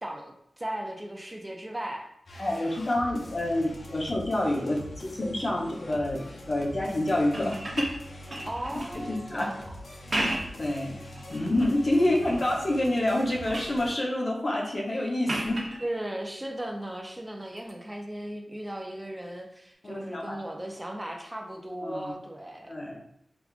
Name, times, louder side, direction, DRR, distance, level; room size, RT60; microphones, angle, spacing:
voice 1, 0.0-2.1 8.4-9.8 11.9-12.4 15.8-23.0, right 1 dB, 20° right, 1 dB, 0.6 m, -37 dB
sound 1, 2.3-13.9, left 1 dB, 70° left, 0.5 m, -44 dB
voice 2, 2.4-7.9 9.0-9.5 10.3-11.0 11.3-15.6 19.8-20.4 21.8-22.1 22.6-23.0, left 1 dB, 50° left, -2 dB, 0.9 m, -28 dB
sound 2, 7.2-9.0 9.9-10.7 11.1-11.8 12.3-12.8 13.1-13.8 15.2-15.8 17.6-17.7, right 1 dB, 50° right, 0.9 m, -34 dB
4.8 x 2.4 x 2.4 m, 0.75 s
wide cardioid pair, 65°, 0 cm